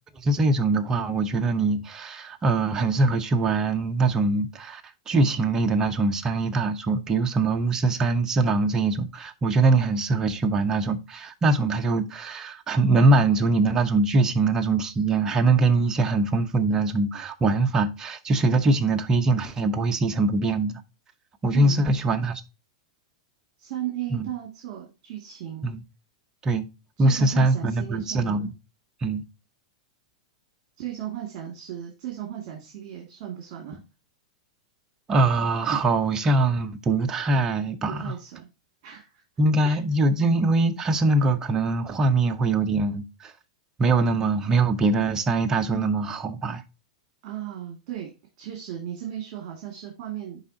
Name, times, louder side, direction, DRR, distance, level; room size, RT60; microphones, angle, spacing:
voice 1, 0.2-20.8 21.4-22.4 24.1-24.3 25.6-25.8 26.4-26.6 27.0-28.5 29.0-29.2 35.1-38.1 39.4-43.3 43.8-46.6, right 3 dB, 20° right, 0.9 m, -23 dB
voice 2, 21.5-21.8 23.6-25.7 27.0-28.5 30.8-33.8 38.0-38.5 38.8-39.2 39.6-39.8 47.2-48.1 48.4-50.4, right 11 dB, 50° right, 2.2 m, -36 dB
10.5 x 3.6 x 2.7 m
hypercardioid pair, 125°, 3 cm